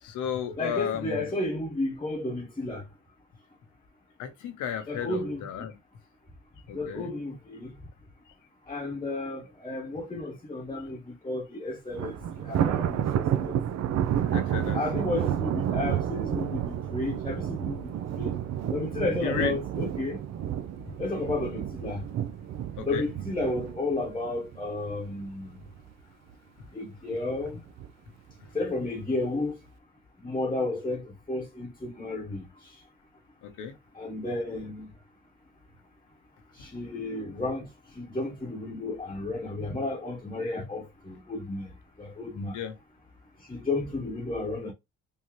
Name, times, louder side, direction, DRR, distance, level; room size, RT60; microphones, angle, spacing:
voice 1, 0.0-1.3 4.2-5.7 6.7-7.1 14.2-15.0 19.2-19.5 22.8-23.0 33.4-33.7 42.5-42.7, left 8 dB, 90° left, 0.9 m, -34 dB
voice 2, 0.6-2.8 4.9-5.7 6.7-7.7 8.7-12.2 12.4-13.5 14.7-18.4 18.7-20.2 21.0-22.0 22.9-25.6 26.7-27.6 28.5-29.6 30.2-32.7 33.9-34.9 36.5-41.7 42.0-42.6 43.5-44.7, left 2 dB, 15° left, 1.0 m, -32 dB
Thunder, 11.9-25.2 25.6-25.9 26.3-26.4 27.3-27.9, right 10 dB, 60° right, 0.5 m, -30 dB
3.6 x 2.8 x 3.1 m
cardioid pair, 90°, 30 cm